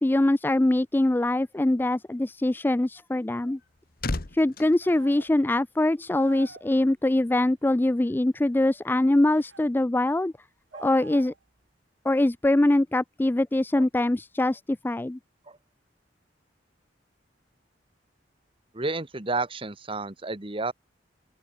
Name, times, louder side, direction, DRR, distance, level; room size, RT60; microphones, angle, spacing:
voice 1, 0.0-3.6 4.3-10.3 10.8-11.3 12.1-15.2, left 1 dB, 10° left, 0.3 m, -23 dB
sound 1, 3.3-6.0 6.2-6.5, left 2 dB, 55° left, 1.3 m, -36 dB
sound 2, 4.8-5.3 6.1-6.7 9.2-9.7 10.7-11.5, right 4 dB, 90° right, 1.8 m, -45 dB
voice 2, 18.7-20.7, right 3 dB, 30° right, 1.5 m, -31 dB
open air
head